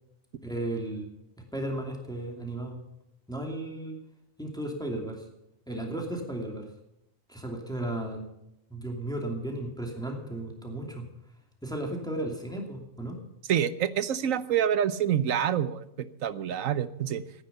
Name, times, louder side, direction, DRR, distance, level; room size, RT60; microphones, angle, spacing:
voice 1, 0.4-1.1 1.5-2.8 3.3-4.0 4.4-5.3 5.7-6.7 7.3-8.3 8.7-11.1 11.6-13.2, right 1 dB, 5° left, 1 dB, 2.6 m, -34 dB
voice 2, 13.5-17.2, right 9 dB, 80° right, 15 dB, 1.2 m, -27 dB
15.5 x 9.7 x 6.9 m, 0.83 s
omnidirectional pair, 1.4 m